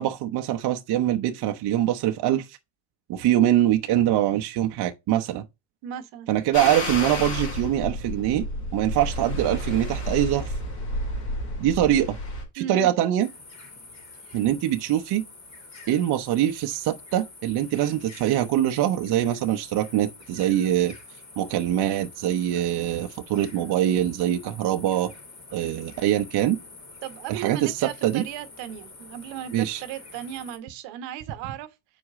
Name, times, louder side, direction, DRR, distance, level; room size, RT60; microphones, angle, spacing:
voice 1, 0.0-2.6 3.1-5.4 6.3-8.4 8.7-10.5 11.6-12.2 12.5-13.3 14.3-15.2 15.9-20.9 21.4-25.1 25.5-26.6 27.3-28.2 29.5-29.8, right 12 dB, 60° right, 0.9 m, -23 dB
voice 2, 5.8-6.3 12.6-12.9 14.2-14.4 27.0-31.7, right 9 dB, 80° right, 1.2 m, -36 dB
sound 1, 6.5-12.4, left 1 dB, 75° left, 4.3 m, -31 dB
sound 2, 13.2-30.6, left 3 dB, 40° left, 3.1 m, -46 dB
6.1 x 4.9 x 3.6 m
supercardioid pair, 100°, 43 cm